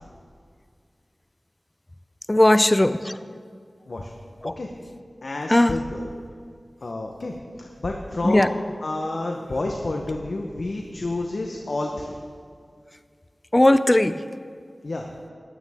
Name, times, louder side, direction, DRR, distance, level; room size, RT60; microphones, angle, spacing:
voice 1, 2.3-3.2 4.4-4.5 5.5-5.7 8.2-8.5 13.5-14.2, left 1 dB, 25° left, 13 dB, 0.4 m, -17 dB
voice 2, 4.4-4.7 5.2-6.1 6.8-12.2 14.8-15.1, left 2 dB, 70° left, 1 dB, 0.9 m, -30 dB
15.5 x 11.5 x 3.6 m, 2.1 s
wide cardioid pair, 55°, 0 cm